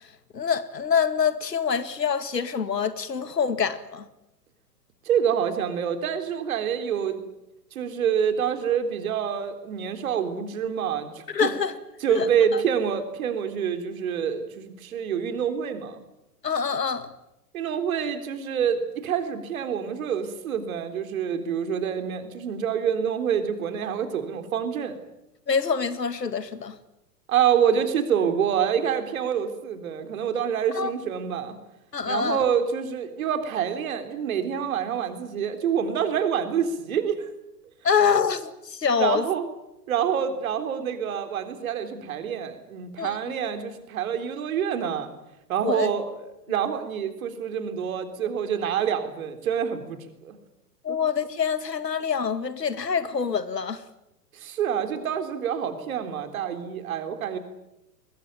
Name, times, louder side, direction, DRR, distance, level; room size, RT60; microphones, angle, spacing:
voice 1, 0.3-4.1 11.3-11.7 12.1-12.6 16.4-17.1 25.5-26.8 30.7-30.9 31.9-32.4 37.8-39.2 43.0-43.4 45.6-45.9 50.8-53.8, left 6 dB, 80° left, 2.1 m, -25 dB
voice 2, 5.1-7.2 7.7-11.5 12.0-16.0 17.5-25.0 27.3-31.6 32.1-37.3 39.0-39.5 39.9-45.1 45.5-46.1 46.5-50.3 50.9-51.0 54.3-57.4, right 8 dB, 55° right, 3.7 m, -27 dB
21.5 x 21.0 x 9.3 m
figure-of-eight pair, 105°, 48 cm